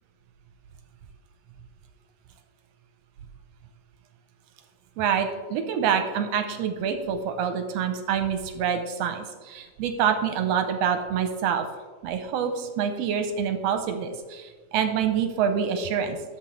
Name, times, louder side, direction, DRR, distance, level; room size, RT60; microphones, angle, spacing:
voice 1, 5.0-11.7 12.0-16.2, right 7 dB, 75° right, 7 dB, 1.6 m, -26 dB
11.5 x 7.1 x 3.2 m, 1.3 s
omnidirectional pair, 3.4 m